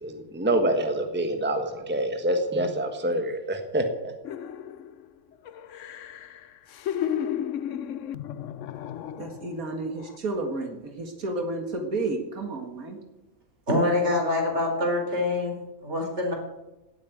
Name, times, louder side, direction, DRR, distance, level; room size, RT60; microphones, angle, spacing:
voice 1, 0.0-4.1, right 1 dB, 10° right, 5 dB, 1.4 m, -26 dB
sound 1, 4.2-5.1 5.5-9.6 10.0-10.2, left 9 dB, 65° left, 1.0 m, -33 dB
voice 2, 9.2-13.0, right 2 dB, 80° right, 4 dB, 2.3 m, -31 dB
voice 3, 13.7-15.5 15.8-16.3, left 2 dB, 50° right, 1 dB, 4.6 m, -25 dB
17.5 x 8.5 x 9.3 m, 1.0 s
omnidirectional pair, 1.5 m